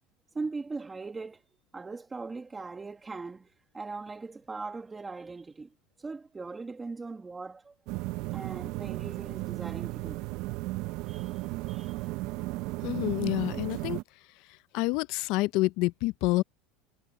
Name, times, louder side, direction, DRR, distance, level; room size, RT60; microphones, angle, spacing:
voice 1, 0.3-1.4 1.7-5.7 6.0-7.7 8.3-10.2 11.1-11.4 11.7-12.1, right 3 dB, 15° right, 1.3 m, -40 dB
sound 1, 7.9-14.0, right 20 dB, 60° right, 0.5 m, -35 dB
voice 2, 12.8-14.0 14.7-16.4, left 20 dB, 60° left, 0.4 m, -28 dB
supercardioid pair, 130°, 0 cm